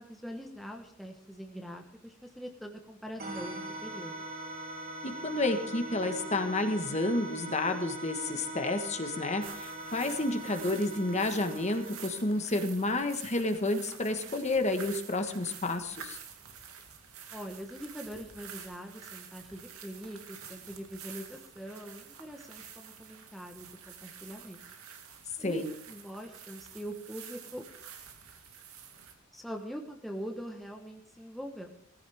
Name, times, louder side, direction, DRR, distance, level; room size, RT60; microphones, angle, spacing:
voice 1, 0.0-4.1 17.3-24.6 25.4-27.7 29.3-31.7, equal, ahead, 2 dB, 1.2 m, -43 dB
sound 1, 3.2-12.6, right 1 dB, 40° right, 2.8 m, -41 dB
voice 2, 5.0-16.2 25.4-25.7, left 2 dB, 30° left, 6 dB, 1.4 m, -30 dB
sound 2, 9.4-29.1, right 8 dB, 85° right, 2.3 m, -49 dB
18.0 x 15.0 x 3.6 m, 0.69 s
head